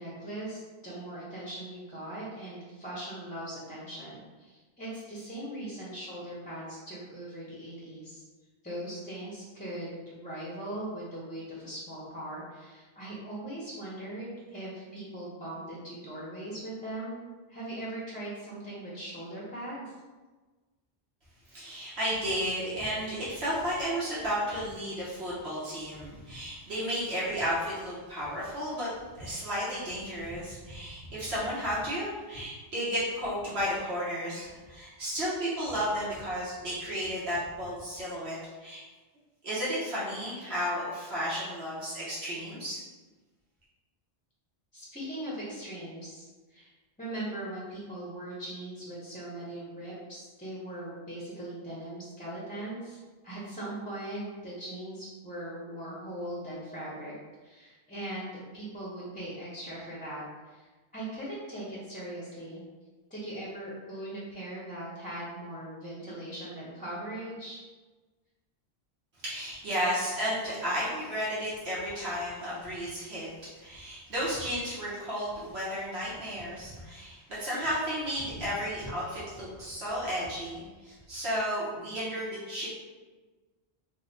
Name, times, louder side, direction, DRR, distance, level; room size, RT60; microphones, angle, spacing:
voice 1, 0.0-8.2 8.6-17.2 17.5-19.8 44.7-46.2 46.5-46.7 47.0-53.0 53.2-57.1 57.4-62.6 63.1-67.6, right 1 dB, 10° left, -7 dB, 0.6 m, -40 dB
voice 2, 21.5-28.9 29.2-38.8 39.4-42.8 69.2-73.3 73.6-82.7, equal, 80° right, -9 dB, 1.2 m, -33 dB
3.4 x 2.1 x 3.9 m, 1.3 s
omnidirectional pair, 1.1 m